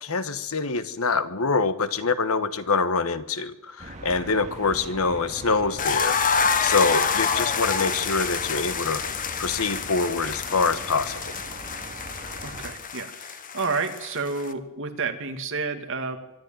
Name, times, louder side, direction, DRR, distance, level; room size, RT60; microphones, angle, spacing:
voice 1, 0.0-6.2 6.6-9.0 9.4-11.3, left 4 dB, 75° left, 12 dB, 1.3 m, -25 dB
sound 1, 3.8-12.7, right 1 dB, 35° right, 3.0 m, -41 dB
sound 2, 5.8-14.5, left 6 dB, 40° left, 1.3 m, -27 dB
voice 2, 12.4-16.2, right 4 dB, 60° right, 6 dB, 2.4 m, -30 dB
24.5 x 11.5 x 9.2 m, 0.90 s
head